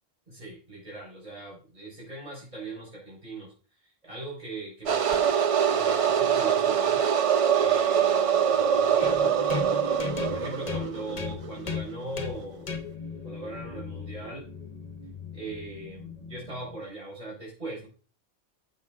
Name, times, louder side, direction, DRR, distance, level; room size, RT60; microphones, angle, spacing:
voice 1, 0.3-3.5 4.0-5.3 5.7-7.0 7.5-10.0 10.3-12.7 13.2-14.4 15.3-17.9, right 2 dB, 30° right, -4 dB, 4.9 m, -40 dB
sound 1, 4.9-11.5, right 8 dB, 65° right, 0.3 m, -24 dB
sound 2, 9.0-16.8, left 5 dB, 35° left, 1.0 m, -37 dB
15.5 x 7.2 x 2.5 m, 0.37 s
omnidirectional pair, 1.3 m